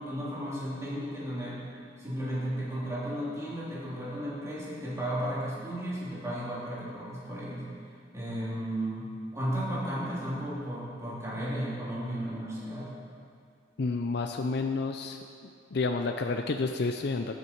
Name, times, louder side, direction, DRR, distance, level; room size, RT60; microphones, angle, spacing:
voice 1, 0.0-1.6 2.0-7.7 8.1-12.9, equal, 15° right, -8 dB, 3.4 m, -34 dB
voice 2, 13.8-15.2 15.7-17.4, left 3 dB, 60° left, 5 dB, 0.5 m, -30 dB
14.0 x 9.5 x 4.6 m, 2.4 s
head